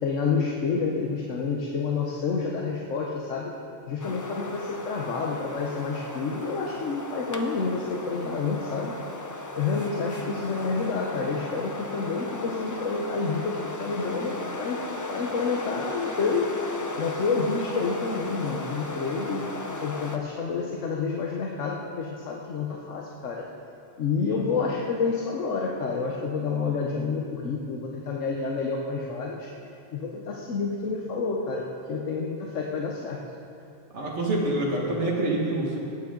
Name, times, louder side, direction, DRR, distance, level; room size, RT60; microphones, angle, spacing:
voice 1, 0.0-3.5 3.9-9.0 9.5-14.8 15.1-19.5 19.8-23.5 24.0-29.5 29.9-33.2, left 4 dB, 90° left, -1 dB, 1.3 m, -29 dB
sound 1, 4.0-20.2, left 2 dB, 25° left, 0.4 m, -36 dB
voice 2, 24.2-24.6 33.9-35.8, right 2 dB, 65° right, -3 dB, 2.1 m, -27 dB
18.5 x 8.7 x 3.8 m, 2.6 s
omnidirectional pair, 1.2 m